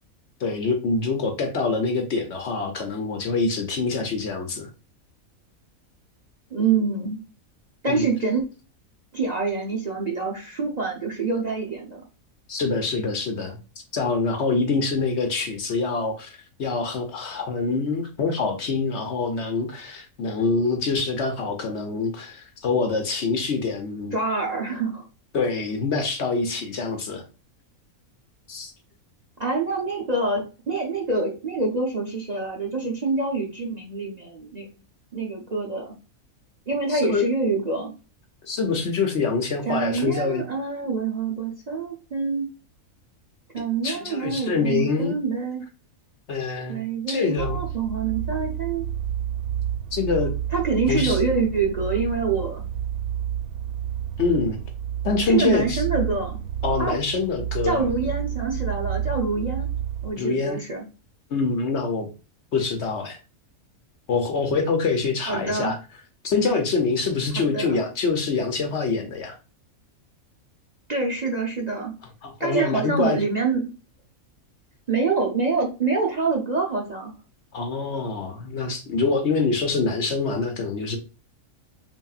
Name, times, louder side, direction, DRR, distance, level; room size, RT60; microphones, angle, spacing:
voice 1, 0.4-4.7 7.9-8.1 12.5-13.6 13.9-24.1 25.3-27.2 28.5-28.7 36.9-37.2 38.4-40.4 43.8-45.1 46.3-46.8 47.1-47.6 49.9-50.3 50.9-51.2 54.2-54.6 55.0-55.8 56.6-57.8 60.2-60.6 61.3-62.1 62.5-63.2 64.1-65.8 66.2-69.4 72.2-73.2 77.5-81.0, left 4 dB, 60° left, 5 dB, 0.9 m, -25 dB
voice 2, 6.5-7.2 7.8-8.4 9.1-12.0 24.1-25.1 29.4-34.7 35.1-35.9 36.7-37.9 39.7-42.5 43.5-45.6 46.7-48.9 50.5-52.7 55.2-56.4 56.8-57.0 57.6-59.7 60.0-60.8 65.3-65.7 67.4-67.8 70.9-71.9 72.4-73.7 74.9-77.1, right 4 dB, 40° right, 0 dB, 0.7 m, -26 dB
sound 1, 47.4-60.1, right 10 dB, 80° right, 1.1 m, -30 dB
5.6 x 2.6 x 2.4 m, 0.32 s
omnidirectional pair, 1.5 m